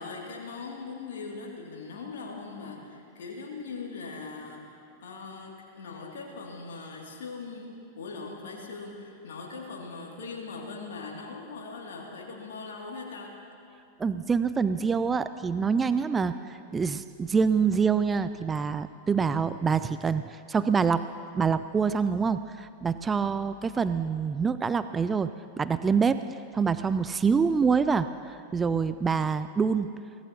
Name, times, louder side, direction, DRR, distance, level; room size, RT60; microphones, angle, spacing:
voice 1, 0.0-7.7 8.0-13.3, left 4 dB, 60° left, -2 dB, 2.6 m, -40 dB
voice 2, 14.0-21.0 21.3-25.3 25.6-26.2 26.5-29.9, right 5 dB, 15° right, 12 dB, 0.4 m, -26 dB
23.0 x 18.5 x 3.0 m, 2.4 s
figure-of-eight pair, 90°, 0 cm